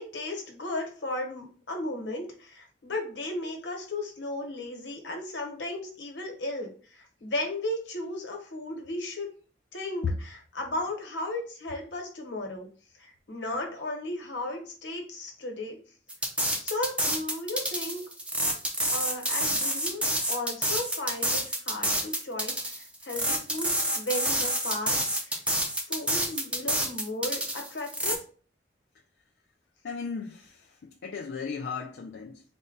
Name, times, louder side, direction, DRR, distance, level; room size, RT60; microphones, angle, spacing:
voice 1, 0.0-9.3 9.7-12.7 13.0-15.8 16.6-18.0 18.9-23.7 23.9-25.4 25.9-28.2, left 1 dB, 90° left, 1.1 m, -35 dB
sound 1, 16.1-28.2, right 1 dB, 5° right, 0.5 m, -28 dB
voice 2, 29.8-32.4, left 5 dB, 75° left, 0.4 m, -35 dB
4.1 x 2.2 x 3.8 m
head